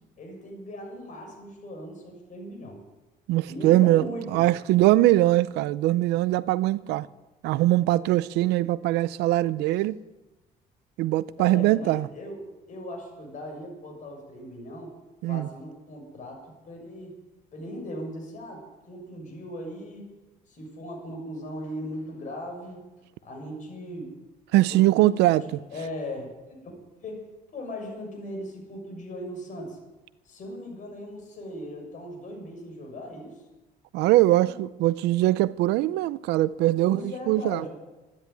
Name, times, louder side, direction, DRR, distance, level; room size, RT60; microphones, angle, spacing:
voice 1, 0.2-2.8 3.5-4.4 9.7-9.8 11.4-12.4 12.7-14.9 15.3-17.2 17.5-20.1 20.5-22.9 23.2-24.1 24.7-26.3 26.6-26.7 27.0-27.3 27.5-29.8 30.2-33.4 34.3-34.5 36.8-37.7, equal, 50° left, 6.4 m, -38 dB
voice 2, 3.3-7.1 7.4-10.0 11.0-12.1 15.2-15.5 24.5-25.6 33.9-37.7, right 16 dB, 90° right, 0.6 m, -22 dB
13.0 x 10.0 x 9.4 m
cardioid pair, 110°, 17 cm